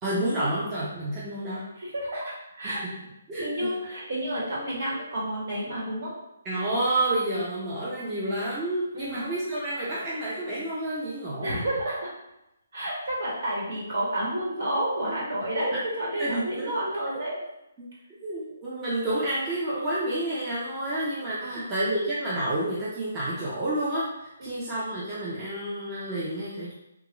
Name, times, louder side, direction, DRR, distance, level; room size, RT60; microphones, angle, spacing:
voice 1, 0.0-1.7 2.6-2.8 3.3-3.8 6.4-11.6 16.2-16.7 17.8-17.9 18.2-26.7, right 1 dB, 15° right, -9 dB, 0.6 m, -29 dB
voice 2, 1.8-2.8 3.4-6.1 8.9-9.2 11.4-12.1 12.7-17.3 21.4-21.6 24.4-24.6, right 1 dB, 55° right, -5 dB, 1.3 m, -30 dB
3.0 x 2.4 x 3.0 m, 0.88 s
hypercardioid pair, 165°, 0 cm